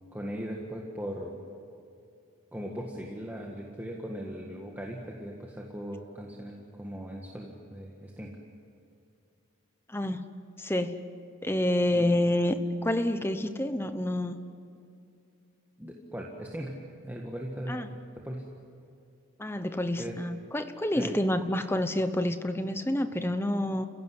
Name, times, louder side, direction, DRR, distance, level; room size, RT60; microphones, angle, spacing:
voice 1, 0.1-1.4 2.5-8.3 11.9-12.1 15.8-16.8 17.0-18.4 20.0-20.2 21.0-21.1, equal, 10° right, -1 dB, 1.7 m, -39 dB
voice 2, 9.9-10.2 10.6-11.0 11.4-14.4 17.7-17.9 19.4-23.9, left 1 dB, 10° left, 9 dB, 1.0 m, -28 dB
29.5 x 16.5 x 9.7 m, 2.5 s
head